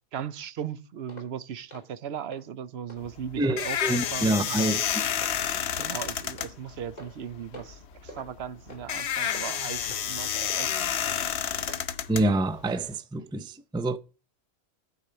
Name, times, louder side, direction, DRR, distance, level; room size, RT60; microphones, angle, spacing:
voice 1, 0.1-4.8 5.8-10.7 11.0-11.7, right 8 dB, 75° right, 0.9 m, -38 dB
sound 1, 1.1-1.3 1.7-1.9 2.3-2.4 2.9-3.0 3.4-3.7 4.0-4.2 4.6-4.7 5.2-5.4 5.8-5.9 6.4-6.5 7.0-7.2 7.5-7.8 8.1-8.3 8.7-8.8 9.3-9.5 9.9-10.1 10.5-10.6 11.1-11.2 11.7-11.8 12.3-12.4 12.8-12.9, left 1 dB, 40° left, 2.8 m, -45 dB
sound 2, 3.0-12.9, left 9 dB, 80° left, 1.0 m, -30 dB
voice 2, 3.4-4.8 12.1-14.0, right 1 dB, 10° right, 0.3 m, -26 dB
12.0 x 4.9 x 6.7 m
omnidirectional pair, 1.1 m